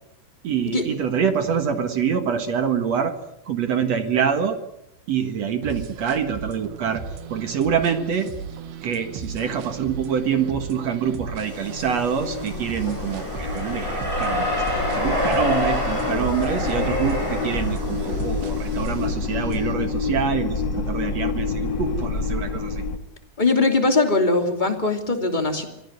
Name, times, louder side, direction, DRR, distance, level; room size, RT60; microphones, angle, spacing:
voice 1, 0.4-3.2 3.5-4.6 5.1-8.3 8.8-22.8, right 7 dB, 55° right, 8 dB, 1.9 m, -25 dB
sound 1, 5.6-19.7, right 5 dB, 75° right, 3.8 m, -37 dB
sound 2, 11.2-23.0, left 4 dB, 60° left, 1.2 m, -28 dB
sound 3, 11.4-19.0, left 1 dB, 5° right, 7.7 m, -28 dB
voice 2, 23.4-25.6, left 3 dB, 15° left, 4 dB, 2.1 m, -21 dB
25.5 x 17.5 x 9.6 m, 0.84 s
omnidirectional pair, 5.1 m